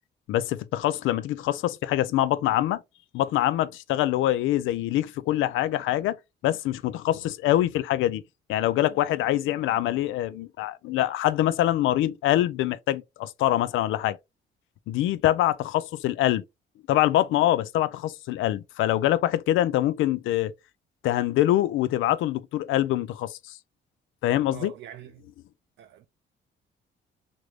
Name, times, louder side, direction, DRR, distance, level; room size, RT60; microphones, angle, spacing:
voice 1, 0.3-2.8 3.1-6.2 6.4-8.2 8.5-14.2 14.9-16.4 16.9-20.5 21.0-23.6 24.2-24.7, left 13 dB, 85° left, 0.4 m, -24 dB
voice 2, 24.5-25.3 25.8-26.1, right 11 dB, 70° right, 0.4 m, -43 dB
3.0 x 2.6 x 3.1 m
cardioid pair, 90°, 20 cm